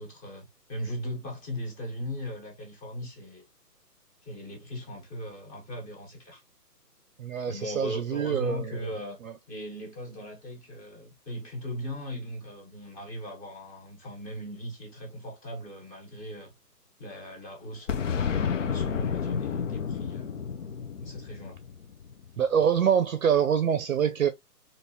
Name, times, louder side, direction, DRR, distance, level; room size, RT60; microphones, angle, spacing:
voice 1, 0.0-3.5 4.2-6.4 7.5-9.2 9.5-16.5 17.0-20.4 21.0-21.6, equal, 20° left, 1.3 m, -38 dB
voice 2, 7.2-8.8 22.4-24.3, right 8 dB, 55° right, 0.6 m, -25 dB
Boom, 17.9-22.6, left 6 dB, 50° left, 0.6 m, -31 dB
3.7 x 2.6 x 2.8 m
hypercardioid pair, 145°, 49 cm